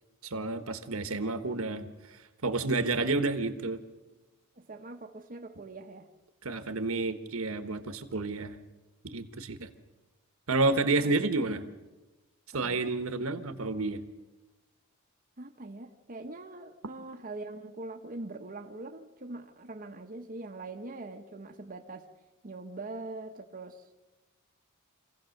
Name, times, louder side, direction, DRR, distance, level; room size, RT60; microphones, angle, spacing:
voice 1, 0.2-1.9 2.4-3.8 6.4-8.5 9.0-9.7 10.5-11.6 12.5-14.0, right 3 dB, 70° right, 1.4 m, -30 dB
voice 2, 4.6-6.1 11.0-11.1 12.6-12.8 15.4-22.1 22.4-23.8, right 2 dB, 40° right, 1.0 m, -42 dB
26.5 x 16.5 x 6.6 m
head